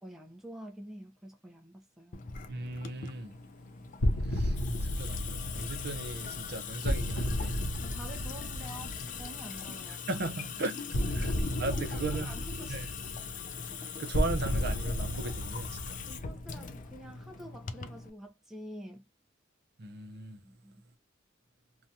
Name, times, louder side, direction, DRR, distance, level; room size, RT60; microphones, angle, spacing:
voice 1, 0.0-2.2 7.8-10.0 11.2-11.3 11.7-12.8 16.1-19.0 20.4-20.7, equal, ahead, 0.6 m, -48 dB
Water tap faucet / Sink (filling or washing) / Drip, 2.1-18.1, left 6 dB, 40° left, 0.4 m, -41 dB
voice 2, 2.5-3.4 4.2-7.6 10.1-10.8 11.1-11.3 11.6-12.4 12.7-12.9 14.0-16.0 19.8-20.4, right 2 dB, 55° right, 0.6 m, -37 dB
sound 1, 4.0-9.8 10.9-17.2, equal, 90° left, 0.7 m, -33 dB
2.8 x 2.2 x 2.6 m
head